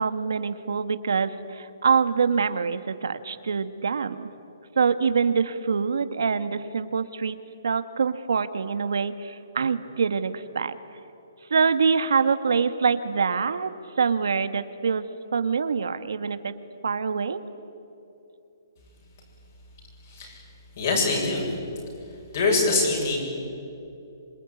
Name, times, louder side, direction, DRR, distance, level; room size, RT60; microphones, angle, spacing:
voice 1, 0.0-4.3 4.7-7.4 7.6-10.8 11.5-13.7 14.0-15.0 15.3-16.5 16.8-17.4, right 5 dB, 80° right, 11 dB, 1.5 m, -25 dB
voice 2, 20.8-21.5 22.3-23.2, left 3 dB, 40° left, -2 dB, 7.3 m, -23 dB
26.0 x 23.5 x 9.7 m, 2.8 s
hypercardioid pair, 175°, 2 cm